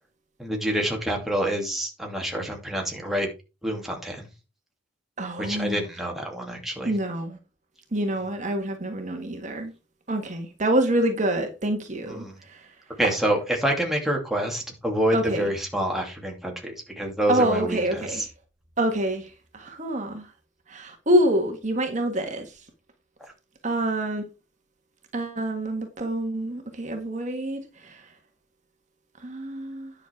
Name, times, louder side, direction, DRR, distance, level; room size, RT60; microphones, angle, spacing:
voice 1, 0.4-3.3 3.6-4.3 5.4-6.9 12.1-12.4 13.0-18.3, right 1 dB, ahead, 2.6 m, -27 dB
voice 2, 5.2-5.8 6.8-7.4 7.9-9.7 10.1-12.7 15.1-15.5 17.3-18.3 18.8-20.3 20.7-22.5 23.6-24.3 25.1-28.0 29.2-29.9, right 1 dB, 40° right, 1.6 m, -26 dB
10.5 x 6.7 x 4.7 m
head